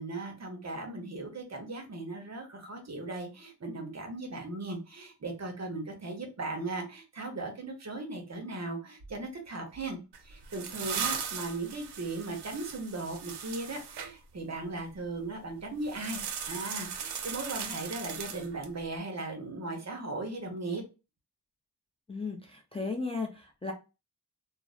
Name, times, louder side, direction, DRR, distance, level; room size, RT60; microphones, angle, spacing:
voice 1, 0.0-10.0 10.2-20.8, right 2 dB, 40° right, 3 dB, 0.9 m, -37 dB
sound 1, 10.1-14.1 15.8-18.8, right 7 dB, 75° right, 0.5 m, -38 dB
voice 2, 22.1-23.7, left 3 dB, 15° left, 0 dB, 0.4 m, -35 dB
2.5 x 2.0 x 2.4 m, 0.30 s
cardioid pair, 60°, 39 cm